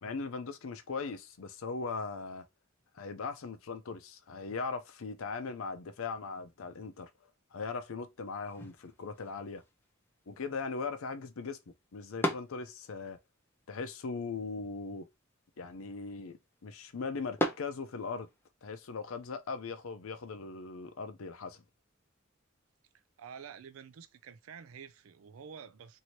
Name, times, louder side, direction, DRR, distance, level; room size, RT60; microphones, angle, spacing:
voice 1, 0.0-2.4 2.9-7.1 7.5-9.6 10.3-11.6 11.9-13.2 13.7-15.1 15.6-18.3 18.6-21.6, left 4 dB, 90° left, 0.5 m, -39 dB
sound 1, 8.5-18.5, left 1 dB, 10° left, 0.5 m, -42 dB
voice 2, 23.2-26.0, right 7 dB, 90° right, 0.4 m, -49 dB
2.8 x 2.7 x 3.0 m
head